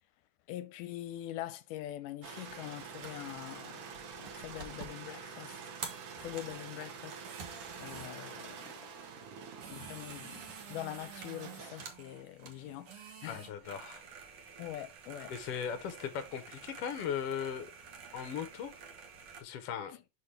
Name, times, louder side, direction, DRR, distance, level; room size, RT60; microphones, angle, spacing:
voice 1, 0.5-3.8 4.2-5.6 6.2-7.5 7.8-8.7 9.7-10.4 10.7-13.4 14.6-15.3, left 14 dB, 85° left, 2.1 m, -43 dB
sound 1, 2.2-11.9, right 6 dB, 80° right, 2.9 m, -47 dB
sound 2, 2.5-19.4, right 5 dB, 60° right, 1.6 m, -50 dB
voice 2, 13.3-14.0 15.3-17.7 18.1-18.7 19.4-19.9, left 8 dB, 60° left, 1.7 m, -38 dB
6.1 x 5.8 x 3.3 m
omnidirectional pair, 3.7 m